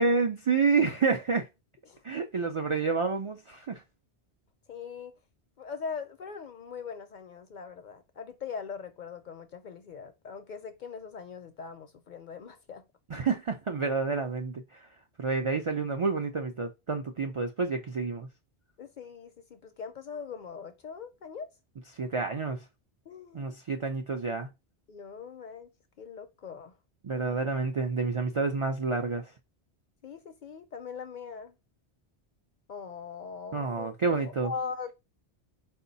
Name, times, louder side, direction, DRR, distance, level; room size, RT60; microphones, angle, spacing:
voice 1, 0.0-1.5 2.0-3.8 13.1-14.9 15.2-18.3 21.9-22.6 23.3-24.5 27.0-29.2 33.5-34.5, right 4 dB, 55° right, 0.3 m, -29 dB
voice 2, 4.7-5.1 5.6-12.8 18.8-21.5 23.1-23.6 24.9-25.7 26.0-26.8 27.2-27.4 30.0-31.5 32.7-33.9 34.2-34.9, left 6 dB, 55° left, 0.5 m, -41 dB
4.6 x 2.2 x 3.9 m
omnidirectional pair, 1.1 m